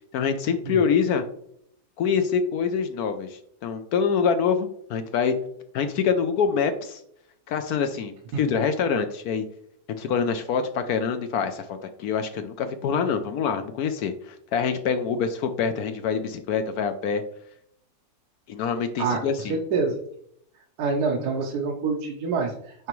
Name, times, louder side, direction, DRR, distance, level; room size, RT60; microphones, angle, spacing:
voice 1, 0.1-1.2 2.0-5.3 5.7-7.0 7.5-9.4 10.0-17.2 18.5-19.6, left 6 dB, 70° left, 8 dB, 1.0 m, -25 dB
voice 2, 19.0-19.9 20.8-22.9, right 4 dB, 70° right, 0 dB, 1.3 m, -27 dB
9.0 x 3.4 x 3.1 m, 0.68 s
omnidirectional pair, 1.8 m